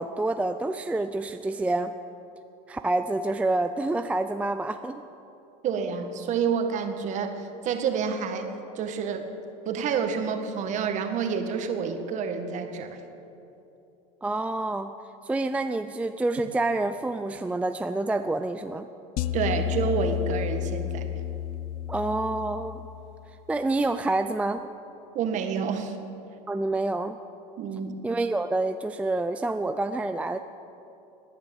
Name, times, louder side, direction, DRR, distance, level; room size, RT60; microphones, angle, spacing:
voice 1, 0.0-1.9 2.7-5.0 14.2-14.9 15.2-18.9 21.9-22.9 23.5-24.6 26.5-27.1 28.0-30.4, right 2 dB, 5° right, 8 dB, 0.4 m, -27 dB
voice 2, 5.6-9.3 9.6-13.0 19.3-21.0 25.1-26.0 27.6-28.0, right 6 dB, 45° right, 6 dB, 1.7 m, -28 dB
sound 1, 19.2-23.5, left 11 dB, 50° left, 0.7 m, -31 dB
18.5 x 10.5 x 7.2 m, 2.9 s
supercardioid pair, 120°, 17 cm